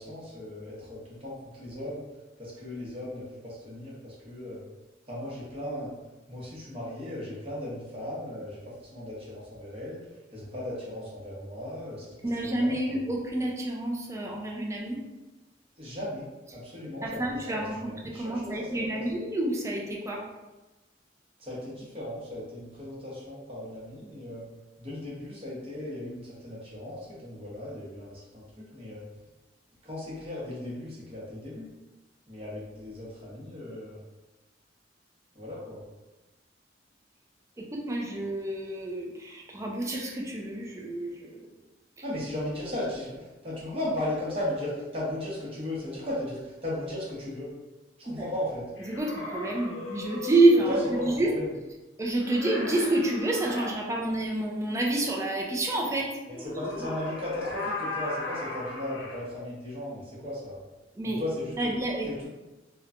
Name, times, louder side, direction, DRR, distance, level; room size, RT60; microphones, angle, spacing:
voice 1, 0.0-2.0 2.4-4.6 5.1-5.9 6.3-10.0 10.3-12.1 12.4-13.0 15.8-16.2 16.5-19.0 21.4-24.4 24.8-29.0 29.8-31.7 32.3-34.0 35.3-35.8 42.0-47.5 48.0-48.7 50.7-51.5 56.3-60.6 61.0-61.5 62.0-62.3, left 1 dB, 30° right, -7 dB, 0.9 m, -36 dB
voice 2, 12.2-15.0 17.0-20.2 37.7-41.1 48.2-48.3 48.9-51.3 52.0-56.1 61.0-61.2 61.6-62.3, right 2 dB, 15° right, -1 dB, 0.4 m, -28 dB
sound 1, 48.8-51.2 52.2-53.7 56.3-59.2, left 2 dB, 90° left, 0.6 m, -37 dB
3.0 x 2.1 x 2.4 m, 1.1 s
head